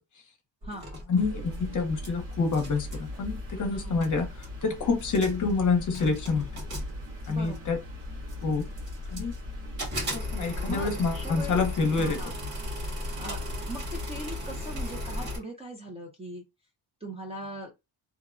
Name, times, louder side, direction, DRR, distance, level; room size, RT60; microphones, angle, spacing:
sound 1, 0.6-2.1 2.3-3.1 3.7-3.8 4.0-4.6 5.0-5.5 5.9-7.7 8.3-9.4 9.8-15.4, equal, 60° right, 1.5 m, -37 dB
voice 1, 1.1-4.3 4.6-6.6 7.3-7.8 8.4-8.7 9.1-9.3 10.1-12.2, left 4 dB, 45° left, 0.7 m, -27 dB
sound 2, 1.2-15.3, left 1 dB, 75° right, 1.3 m, -39 dB
voice 2, 3.7-4.1 7.3-7.7 10.6-11.6 11.9-12.3 13.2-13.4 13.7-16.4 17.0-17.7, right 1 dB, 15° right, 0.5 m, -40 dB
2.7 x 2.1 x 2.4 m
wide cardioid pair, 170°, 43 cm